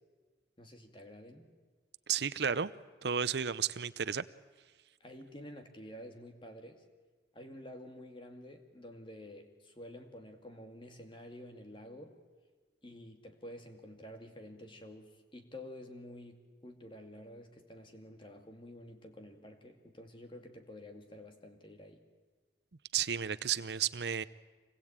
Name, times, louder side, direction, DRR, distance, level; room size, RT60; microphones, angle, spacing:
voice 1, 0.6-1.5 5.0-6.8 7.3-12.2 12.8-22.0, left 1 dB, 30° left, 5 dB, 2.3 m, -50 dB
voice 2, 2.1-2.7 3.0-4.2 22.9-24.2, right 8 dB, 70° right, 14 dB, 0.7 m, -32 dB
25.5 x 20.0 x 8.9 m, 1.4 s
head